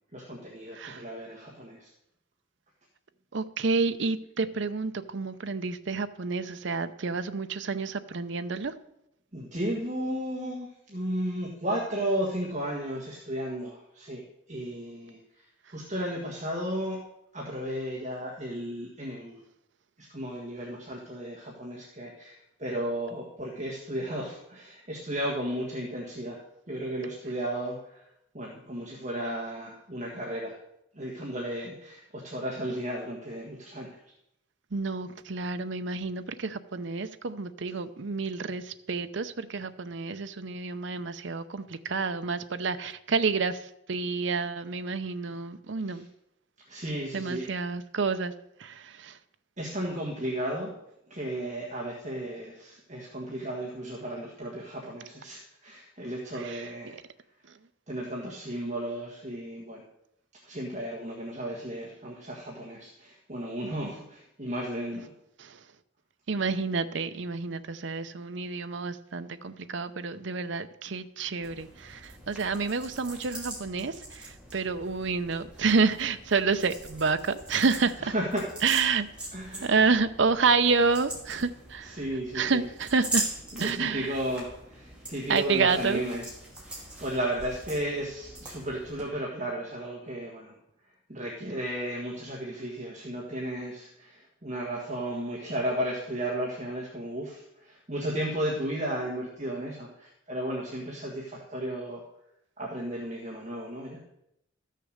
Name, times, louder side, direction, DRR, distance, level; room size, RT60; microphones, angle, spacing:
voice 1, 0.1-1.9 9.3-14.2 14.5-15.2 15.7-17.0 17.3-19.4 20.0-26.4 26.7-28.0 28.3-30.6 30.9-34.0 45.8-46.0 46.7-47.5 49.6-50.7 51.1-57.0 57.9-59.8 60.4-65.1 78.1-78.5 79.3-79.7 81.8-82.6 83.6-86.2 86.7-90.5 91.1-102.0 102.6-104.0, right 1 dB, 35° right, -3 dB, 1.5 m, -34 dB
voice 2, 0.7-1.0 3.3-8.7 34.7-46.1 47.1-48.3 48.6-49.2 56.3-57.0 65.4-65.6 66.3-78.1 78.6-79.1 79.6-82.0 82.3-83.3 83.6-84.2 85.3-86.0, right 4 dB, 60° right, 10 dB, 0.6 m, -29 dB
sound 1, 71.4-89.0, right 1 dB, 5° right, 2.6 m, -41 dB
13.5 x 6.6 x 6.5 m, 0.81 s
head